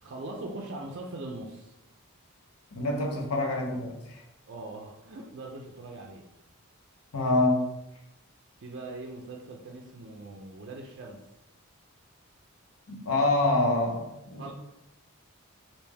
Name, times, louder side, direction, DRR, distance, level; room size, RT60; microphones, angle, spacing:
voice 1, 0.0-1.7 4.5-6.3 8.6-11.2 14.4-14.5, right 2 dB, 50° right, 0 dB, 0.4 m, -41 dB
voice 2, 2.8-4.2 7.1-7.6 12.9-14.5, left 2 dB, 80° left, 1 dB, 0.8 m, -26 dB
3.2 x 2.6 x 3.3 m, 0.89 s
head